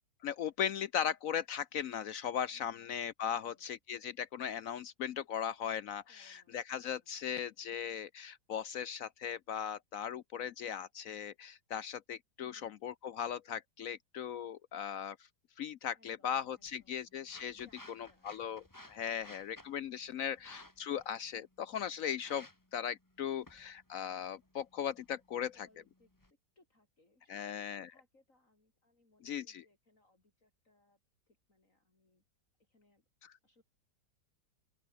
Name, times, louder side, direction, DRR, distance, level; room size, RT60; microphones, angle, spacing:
voice 1, 0.2-15.2 15.6-17.7 18.2-18.6 18.9-22.5 22.7-25.5 27.3-27.9 29.2-29.6, left 8 dB, 70° left, 0.8 m, -38 dB
voice 2, 2.5-3.8 6.0-8.0 12.4-12.8 15.9-17.0 17.5-18.4 19.9-20.6 23.2-23.8 25.5-31.0 31.3-32.2 32.6-33.6, left 2 dB, 45° left, 6.0 m, -70 dB
sound 1, 16.3-26.3, left 1 dB, 10° left, 2.3 m, -59 dB
open air
omnidirectional pair, 2.0 m